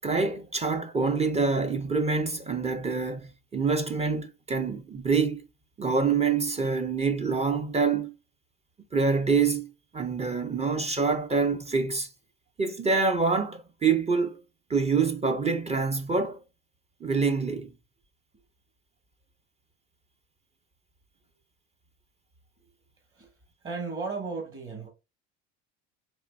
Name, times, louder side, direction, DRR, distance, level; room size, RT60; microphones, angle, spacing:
voice 1, 0.0-5.4 5.8-8.1 8.9-9.7 9.9-12.1 12.6-14.4 14.7-16.4 17.0-17.7, right 4 dB, 20° right, 0.5 m, -26 dB
voice 2, 23.6-24.9, right 4 dB, 35° right, 1.8 m, -35 dB
4.2 x 2.6 x 2.5 m
supercardioid pair, 80°, 35 cm